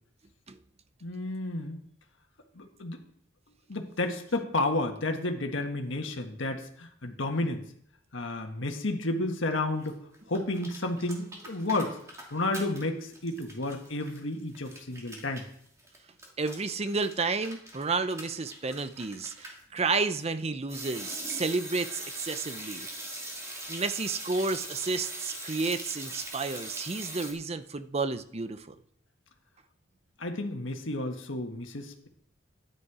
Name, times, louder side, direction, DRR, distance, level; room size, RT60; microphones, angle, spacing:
voice 1, 1.0-1.8 2.6-3.0 3.7-7.6 8.1-10.0 10.3-12.0 12.3-15.4 30.2-32.1, left 2 dB, 70° left, 4 dB, 1.6 m, -31 dB
sound 1, 9.8-9.9 10.1-12.8 13.1-19.6 20.7-27.3, right 1 dB, 15° right, 2.5 m, -41 dB
voice 2, 16.4-22.9 23.7-28.7, right 4 dB, 30° right, 12 dB, 0.6 m, -31 dB
13.0 x 9.9 x 4.9 m, 0.67 s
head